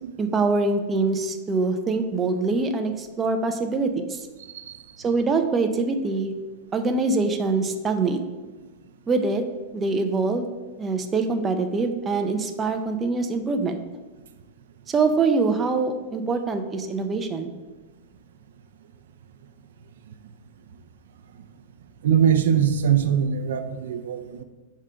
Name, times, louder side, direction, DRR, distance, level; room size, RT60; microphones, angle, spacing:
voice 1, 0.2-4.3 5.0-6.3 6.7-8.2 9.1-9.4 9.7-10.5 10.8-13.8 14.9-17.5, right 3 dB, 15° right, 5 dB, 0.5 m, -24 dB
voice 2, 4.5-5.0 8.6-8.7 20.1-20.2 20.7-20.8 22.0-24.4, right 8 dB, 85° right, 9 dB, 0.5 m, -23 dB
5.0 x 3.7 x 5.6 m, 1.2 s
supercardioid pair, 145°, 0 cm